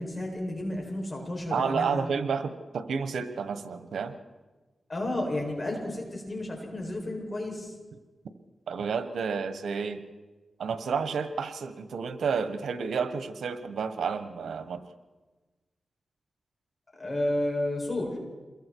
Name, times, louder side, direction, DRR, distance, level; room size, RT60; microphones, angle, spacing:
voice 1, 0.0-2.0 4.9-7.7 17.0-18.1, left 1 dB, 35° left, 0 dB, 7.6 m, -31 dB
voice 2, 1.5-4.2 8.7-10.0 10.6-14.8, right 5 dB, 85° right, 10 dB, 1.3 m, -30 dB
28.0 x 22.0 x 4.7 m, 1.3 s
cardioid pair, 45°, 0 cm